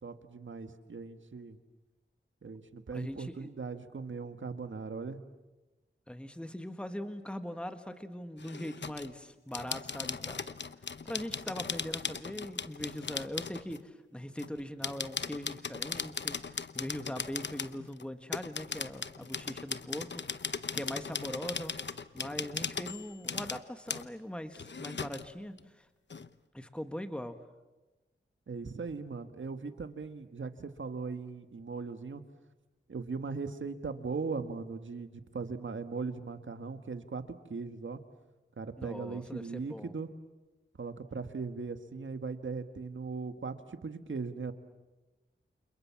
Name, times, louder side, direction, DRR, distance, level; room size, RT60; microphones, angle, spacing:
voice 1, 0.0-1.6 2.4-5.2 28.5-32.2 32.9-37.2 37.5-38.0 38.6-40.1 40.8-44.5, right 4 dB, 75° right, 9 dB, 1.7 m, -39 dB
voice 2, 2.9-3.5 6.1-10.4 11.0-21.7 22.1-25.9 26.5-27.4 38.8-39.9, equal, 5° left, 8 dB, 1.6 m, -41 dB
sound 1, 8.4-9.1 9.5-13.8 14.4-18.0 18.3-23.6 23.9-24.1 24.5-25.3 25.6-25.7 26.1-26.3, left 5 dB, 60° left, 0.9 m, -38 dB
29.5 x 27.5 x 7.3 m, 1.1 s
wide cardioid pair, 85°, 20 cm